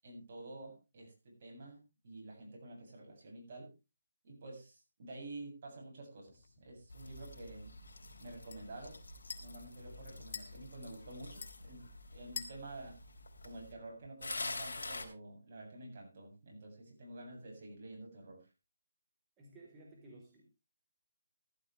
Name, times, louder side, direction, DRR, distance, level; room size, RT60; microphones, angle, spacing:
voice 1, 0.0-3.7 4.2-7.7 8.2-9.0 9.4-11.8 12.1-13.0 13.4-18.5, right 2 dB, 40° right, 1 dB, 7.7 m, -49 dB
sound 1, 6.3-14.1, left 5 dB, 50° left, 1.9 m, -52 dB
sound 2, 6.9-13.7 14.2-15.0, left 2 dB, 75° left, 3.3 m, -47 dB
voice 2, 19.4-20.4, right 2 dB, 15° right, -1 dB, 4.2 m, -56 dB
15.0 x 12.0 x 3.4 m, 0.28 s
hypercardioid pair, 160°, 0 cm